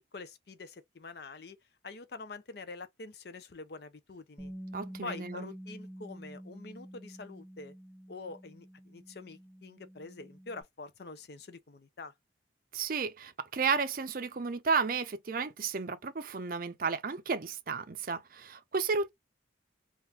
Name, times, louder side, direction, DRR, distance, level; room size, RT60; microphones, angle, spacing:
voice 1, 0.1-1.6 1.8-4.5 5.0-7.7 8.1-12.1, left 3 dB, 55° left, 0.5 m, -45 dB
Bass guitar, 4.4-10.6, equal, 10° left, 1.5 m, -47 dB
voice 2, 4.7-5.5 12.7-19.1, right 5 dB, 50° right, 0.5 m, -33 dB
3.7 x 2.5 x 2.8 m
head